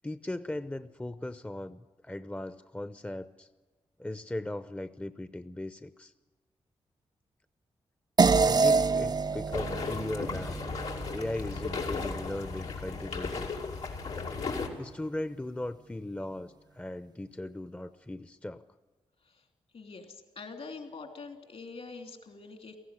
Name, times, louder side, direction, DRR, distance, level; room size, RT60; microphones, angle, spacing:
voice 1, 0.0-3.5 4.0-6.1 8.4-10.6 11.1-13.5 14.8-18.6, left 1 dB, 10° left, 12 dB, 0.7 m, -38 dB
sound 1, 8.2-12.9, right 4 dB, 40° right, 0.5 m, -28 dB
sound 2, 9.5-14.7, left 4 dB, 85° left, 2.7 m, -35 dB
voice 2, 19.7-20.1 20.4-22.8, left 4 dB, 65° left, 4 dB, 3.1 m, -44 dB
17.5 x 15.0 x 9.9 m, 1.3 s
cardioid pair, 50°, 11 cm